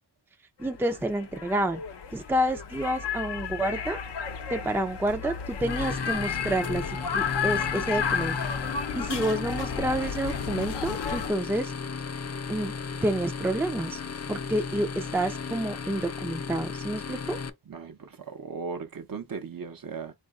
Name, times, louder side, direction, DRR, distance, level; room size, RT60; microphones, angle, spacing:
sound 1, 0.6-11.3, left 6 dB, 75° left, 0.8 m, -32 dB
voice 1, 0.6-1.8 2.1-4.0 4.5-6.8 7.1-8.4 8.6-11.7 12.5-12.7 13.0-14.0 14.3-17.4, right 1 dB, 5° right, 0.5 m, -29 dB
sound 2, 5.6-17.5, left 5 dB, 40° left, 0.6 m, -35 dB
voice 2, 17.7-20.1, right 5 dB, 50° right, 0.9 m, -37 dB
3.8 x 2.6 x 3.5 m
wide cardioid pair, 70°, 42 cm